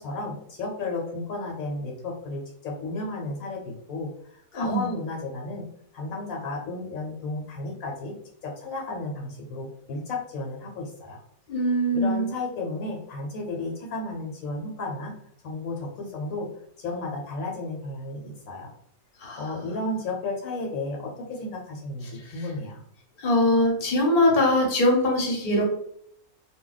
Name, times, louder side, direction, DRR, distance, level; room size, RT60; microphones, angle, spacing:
voice 1, 0.0-5.6 5.9-8.1 8.4-11.2 11.9-15.1 15.4-16.5 16.8-18.7 19.4-22.8, left 2 dB, 70° left, 0 dB, 1.1 m, -33 dB
voice 2, 4.5-4.9 11.5-12.3 19.2-19.4 23.2-25.7, left 1 dB, 40° left, -1 dB, 0.9 m, -22 dB
2.3 x 2.2 x 3.9 m, 0.68 s
omnidirectional pair, 1.5 m